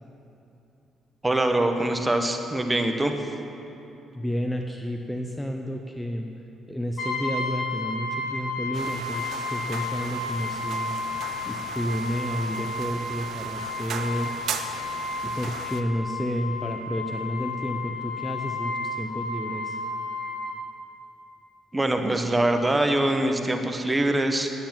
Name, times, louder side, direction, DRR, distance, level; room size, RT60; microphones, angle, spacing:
voice 1, 1.2-3.1 21.7-24.5, right 1 dB, 15° right, 5 dB, 1.0 m, -23 dB
voice 2, 4.1-6.3 6.6-10.9 11.5-14.3 15.2-19.8, equal, 5° left, 3 dB, 0.7 m, -31 dB
Brass instrument, 7.0-20.6, left 3 dB, 60° left, 1.7 m, -32 dB
sound 1, 8.7-15.8, right 6 dB, 65° right, 0.7 m, -37 dB
9.6 x 8.9 x 7.5 m, 2.8 s
cardioid pair, 90°, 0 cm